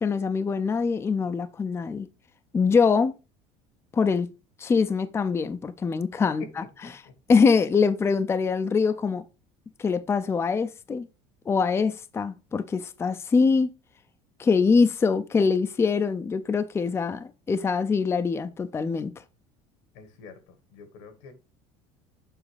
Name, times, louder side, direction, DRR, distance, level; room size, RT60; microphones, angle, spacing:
voice 1, 0.0-2.1 2.5-3.1 3.9-4.3 4.6-6.6 6.9-7.0 7.3-9.2 9.8-11.1 11.5-13.7 14.4-19.1, left 5 dB, 15° left, 0.4 m, -23 dB
voice 2, 6.8-7.1 19.9-20.4 20.7-21.3, left 5 dB, 85° left, 1.6 m, -46 dB
7.2 x 5.3 x 3.3 m
supercardioid pair, 120°, 14 cm